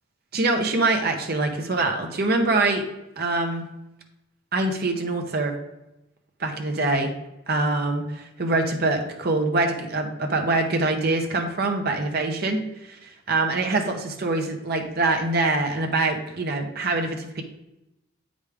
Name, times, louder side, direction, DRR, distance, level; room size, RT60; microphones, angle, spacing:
voice 1, 0.3-2.8 3.2-3.6 4.5-5.5 6.4-7.1 7.5-12.6 12.9-17.4, right 2 dB, 45° right, 3 dB, 0.9 m, -24 dB
8.1 x 5.1 x 3.6 m, 0.90 s
head